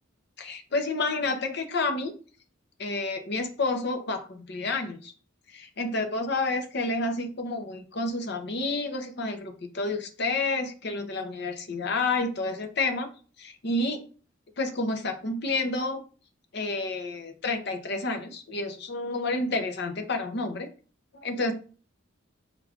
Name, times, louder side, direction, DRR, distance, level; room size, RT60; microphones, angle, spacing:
voice 1, 0.4-2.1 2.8-5.1 5.5-13.1 13.4-14.0 14.6-16.0 16.5-20.7 21.2-21.5, left 3 dB, 55° left, 6 dB, 0.7 m, -29 dB
4.8 x 2.4 x 3.5 m, 0.38 s
head